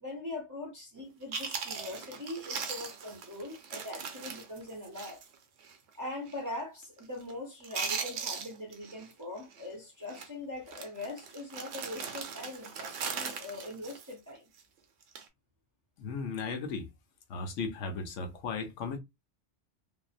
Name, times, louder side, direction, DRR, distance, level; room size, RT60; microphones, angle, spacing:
voice 1, 0.0-5.2 6.0-14.4, left 2 dB, 20° right, 0.5 m, -42 dB
Chewing mastication, 1.0-1.1 1.3-5.3 5.6-5.8 6.3-6.6 6.8-7.3 7.6-9.1 9.4-9.6 10.1-10.3 10.7-14.6 15.0-15.3, right 6 dB, 70° right, 0.8 m, -39 dB
voice 2, 16.0-16.9 17.3-19.0, left 4 dB, 80° left, 1.0 m, -36 dB
2.6 x 2.0 x 2.4 m
omnidirectional pair, 1.2 m